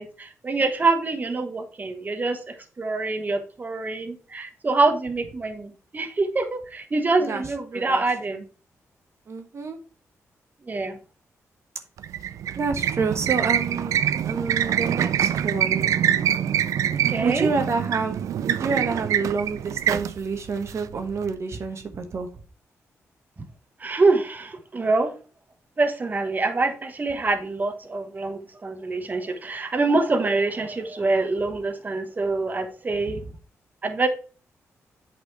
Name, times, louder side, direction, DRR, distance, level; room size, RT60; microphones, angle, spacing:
voice 1, 0.0-8.4 10.7-11.0 16.8-17.5 23.8-25.1 25.8-33.2 33.8-34.1, right 3 dB, 30° right, 6 dB, 1.1 m, -25 dB
voice 2, 9.3-9.8 12.6-13.9 14.3-16.0 17.2-22.3 33.1-33.2, right 4 dB, 60° right, 5 dB, 1.1 m, -28 dB
sound 1, 12.0-21.3, right 10 dB, 90° right, 0.4 m, -25 dB
8.1 x 4.3 x 4.7 m, 0.37 s
cardioid pair, 90°, 5 cm